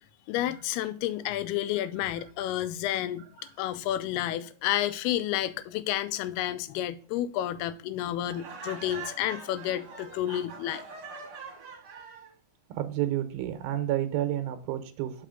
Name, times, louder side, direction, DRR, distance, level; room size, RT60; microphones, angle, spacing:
voice 1, 0.3-3.3 3.6-10.8, left 12 dB, 90° left, 2.6 m, -30 dB
Laughter, 8.3-12.3, right 4 dB, 50° right, 1.9 m, -43 dB
voice 2, 12.7-15.3, right 12 dB, 80° right, 2.6 m, -30 dB
6.8 x 5.6 x 3.8 m
omnidirectional pair, 4.4 m